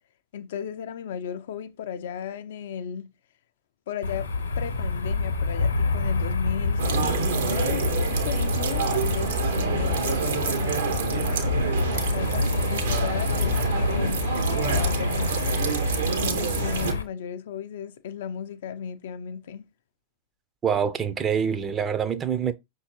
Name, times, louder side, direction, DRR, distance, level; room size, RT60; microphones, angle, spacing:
voice 1, 0.3-3.1 3.9-4.3 4.6-15.6 16.2-19.6, left 8 dB, 60° left, 0.3 m, -35 dB
sound 1, 4.0-17.0, left 3 dB, 75° left, 0.8 m, -27 dB
sound 2, 6.8-16.9, right 6 dB, 65° right, 0.8 m, -27 dB
voice 2, 20.6-22.5, right 7 dB, 25° right, 0.5 m, -25 dB
5.5 x 2.7 x 3.0 m
figure-of-eight pair, 90°, 0 cm